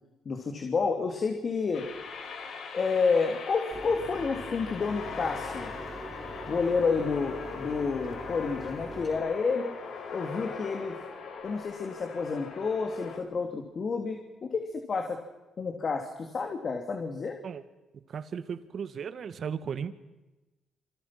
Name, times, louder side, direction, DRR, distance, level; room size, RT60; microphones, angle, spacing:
voice 1, 0.2-1.8 2.7-5.7 6.5-9.7 10.1-10.9 11.4-15.2 15.6-17.4, left 4 dB, 45° left, 4 dB, 3.2 m, -30 dB
sound 1, 1.7-13.2, left 5 dB, 70° left, 5.3 m, -41 dB
Mechanisms, 3.7-9.2, right 1 dB, 20° right, 5.9 m, -43 dB
voice 2, 18.1-19.9, right 7 dB, 55° right, 12 dB, 1.9 m, -35 dB
27.5 x 26.5 x 6.1 m, 1.1 s
cardioid pair, 90°, 0 cm